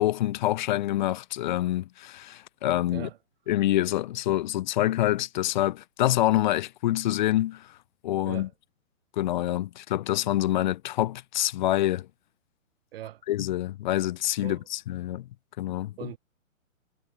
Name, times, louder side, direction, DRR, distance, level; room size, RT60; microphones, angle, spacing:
voice 1, 0.0-3.1 3.5-7.7 8.0-8.5 9.2-12.1 13.3-15.3 15.6-16.1, left 14 dB, 35° left, 1.1 m, -26 dB
voice 2, 12.9-13.2 14.4-14.7 16.0-16.2, right 13 dB, 45° right, 2.2 m, -39 dB
hypercardioid pair, 155°, 41 cm